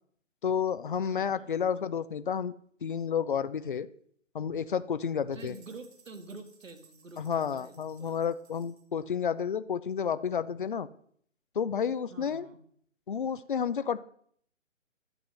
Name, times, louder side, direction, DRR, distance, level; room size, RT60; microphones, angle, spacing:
voice 1, 0.4-2.5 2.8-3.9 4.3-5.5 7.2-10.9 11.6-12.5 13.1-14.0, left 7 dB, 40° left, 15 dB, 0.5 m, -31 dB
voice 2, 1.1-1.5 5.3-8.2 12.1-12.6, right 3 dB, 75° right, 8 dB, 1.8 m, -48 dB
sound 1, 5.3-9.0, right 5 dB, 55° right, 2.4 m, -61 dB
11.5 x 7.7 x 5.4 m, 0.63 s
figure-of-eight pair, 150°, 39 cm